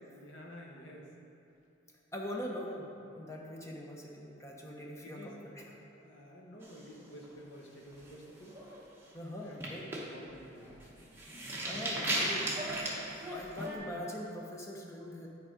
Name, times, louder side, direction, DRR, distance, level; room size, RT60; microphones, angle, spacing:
voice 1, 0.0-1.1 5.0-5.4 5.8-8.6 9.4-10.8, equal, 85° left, 0 dB, 1.1 m, -51 dB
voice 2, 2.1-2.9 3.1-5.6 9.1-9.9 11.6-12.5 13.3-15.3, left 1 dB, 15° left, -2 dB, 0.7 m, -42 dB
sound 1, 6.6-7.5 7.9-8.2 8.5-8.8 9.4-13.8, right 1 dB, 10° right, 1.0 m, -36 dB
9.4 x 4.8 x 4.9 m, 2.7 s
head